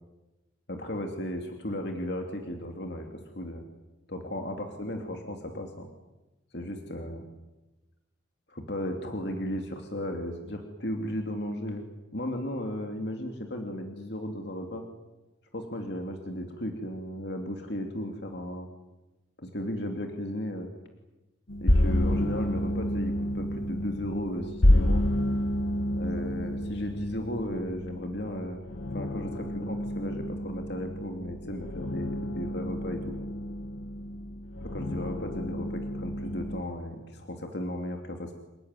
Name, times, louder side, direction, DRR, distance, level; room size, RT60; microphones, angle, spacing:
voice 1, 0.7-3.1 3.3-3.6 4.1-5.9 6.5-7.2 8.5-11.8 12.1-14.8 15.5-18.7 19.4-20.7 21.6-25.0 25.9-28.6 28.9-33.1 34.6-38.3, equal, 55° left, 4 dB, 2.7 m, -35 dB
sound 1, 21.5-36.6, left 1 dB, 75° left, 1.4 m, -29 dB
29.0 x 18.0 x 9.8 m, 1.1 s
head